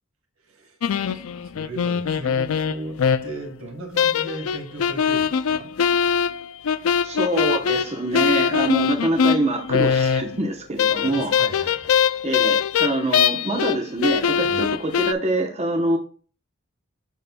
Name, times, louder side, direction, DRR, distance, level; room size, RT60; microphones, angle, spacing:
voice 1, 0.4-0.8 1.1-5.7 11.0-12.0 14.4-14.7, right 2 dB, 75° right, 3 dB, 1.8 m, -37 dB
sound 1, 0.8-3.5 4.0-10.5 10.8-13.8 14.0-15.1, left 7 dB, 70° left, 0.4 m, -22 dB
voice 2, 7.0-11.5 12.2-16.0, right 2 dB, 30° right, 2 dB, 0.9 m, -25 dB
12.0 x 4.2 x 2.3 m, 0.40 s
head